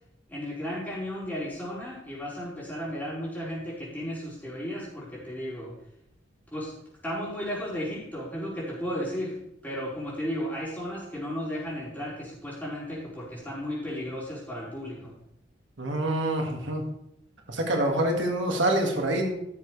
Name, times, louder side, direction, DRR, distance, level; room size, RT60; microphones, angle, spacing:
voice 1, 0.3-5.7 6.5-6.7 7.0-9.3 9.6-15.1, equal, 10° left, -7 dB, 4.5 m, -34 dB
voice 2, 15.8-16.8 17.5-19.3, right 1 dB, 85° right, 1 dB, 1.9 m, -26 dB
15.0 x 7.3 x 3.3 m, 0.77 s
head